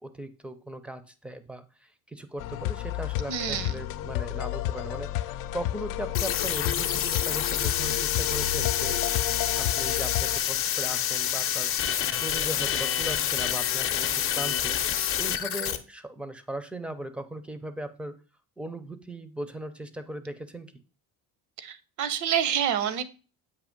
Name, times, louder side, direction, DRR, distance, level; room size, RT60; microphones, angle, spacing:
voice 1, 0.0-18.2 18.6-20.8, right 1 dB, 5° right, 11 dB, 0.4 m, -38 dB
sound 1, 2.4-10.4, left 13 dB, 85° left, 0.5 m, -31 dB
voice 2, 3.3-3.7 21.6-23.0, right 8 dB, 65° right, 14 dB, 0.7 m, -27 dB
sound 2, 6.1-15.8, left 10 dB, 40° left, 0.6 m, -28 dB
8.3 x 2.8 x 5.1 m, 0.35 s
cardioid pair, 155°, 32 cm